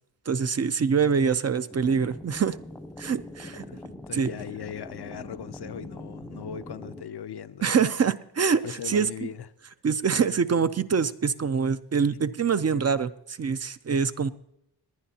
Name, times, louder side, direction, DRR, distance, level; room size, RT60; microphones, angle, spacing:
voice 1, 0.3-2.6 3.0-3.6 4.1-4.3 7.6-9.3 9.8-14.3, right 6 dB, 40° right, 0.4 m, -25 dB
sound 1, 1.7-7.0, left 1 dB, 5° left, 0.6 m, -42 dB
voice 2, 3.5-7.7 8.6-9.5, left 9 dB, 75° left, 0.6 m, -39 dB
19.0 x 10.5 x 2.8 m
wide cardioid pair, 115°, 40 cm